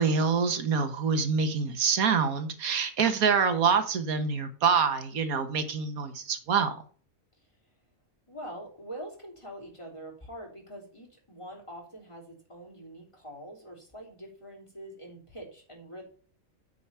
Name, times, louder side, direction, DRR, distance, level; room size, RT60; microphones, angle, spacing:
voice 1, 0.0-6.8, right 6 dB, 80° right, 1.6 m, -26 dB
voice 2, 8.3-16.0, right 1 dB, 20° left, 3.4 m, -44 dB
9.2 x 4.8 x 5.5 m
omnidirectional pair, 1.5 m